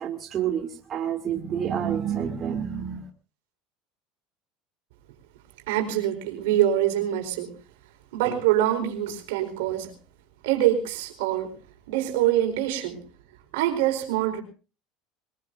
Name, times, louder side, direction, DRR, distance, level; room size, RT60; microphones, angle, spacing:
voice 1, 0.0-3.1, right 8 dB, 40° right, 3 dB, 2.7 m, -28 dB
voice 2, 5.7-7.5 8.1-9.9 10.4-11.5 11.9-13.0 13.5-14.4, right 12 dB, 85° right, 4 dB, 4.5 m, -24 dB
22.5 x 21.0 x 2.6 m, 0.36 s
supercardioid pair, 110°, 0 cm